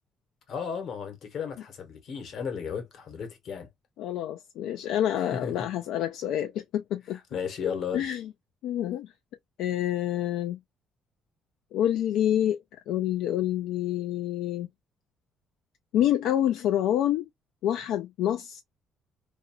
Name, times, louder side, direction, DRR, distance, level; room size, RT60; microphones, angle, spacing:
voice 1, 0.5-3.7 5.3-5.5 7.1-8.1, left 7 dB, 55° left, 1.1 m, -34 dB
voice 2, 4.0-7.2 7.9-8.3 8.6-9.1 9.6-10.6 11.7-12.6 12.9-14.7 15.9-17.3 17.6-18.6, left 11 dB, 80° left, 0.3 m, -27 dB
2.6 x 2.3 x 2.6 m
cardioid pair, 130°, 0 cm